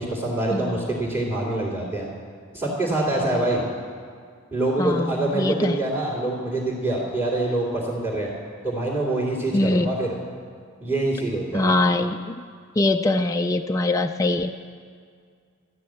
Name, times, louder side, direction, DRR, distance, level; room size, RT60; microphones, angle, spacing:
voice 1, 0.0-2.1 2.5-3.7 4.5-8.3 8.6-10.2 10.8-11.7, right 2 dB, 15° right, -8 dB, 2.8 m, -25 dB
voice 2, 0.5-0.8 3.2-3.3 4.8-5.8 9.5-9.9 11.5-12.5 12.8-14.5, left 2 dB, 15° left, 4 dB, 0.3 m, -23 dB
13.0 x 10.0 x 7.6 m, 2.1 s
head